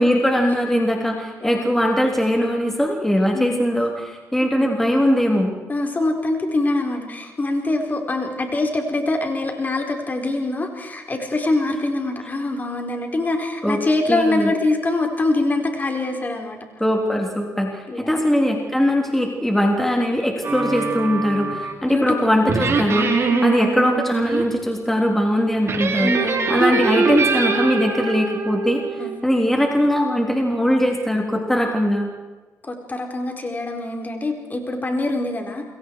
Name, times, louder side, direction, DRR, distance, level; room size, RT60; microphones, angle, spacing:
voice 1, 0.0-5.5 13.6-13.8 14.1-14.5 16.8-26.1 26.5-32.1, equal, 5° left, 1 dB, 3.6 m, -20 dB
voice 2, 1.4-1.7 3.3-3.6 4.4-4.8 5.7-16.6 17.9-18.2 21.9-22.2 23.3-23.7 26.0-26.6 29.0-29.1 32.6-35.6, left 2 dB, 30° left, 3 dB, 4.5 m, -24 dB
sound 1, 20.4-21.9 22.5-24.4 25.6-29.2, right 4 dB, 45° right, 4.4 m, -23 dB
28.5 x 23.0 x 4.8 m, 1.3 s
cardioid pair, 90°, 6 cm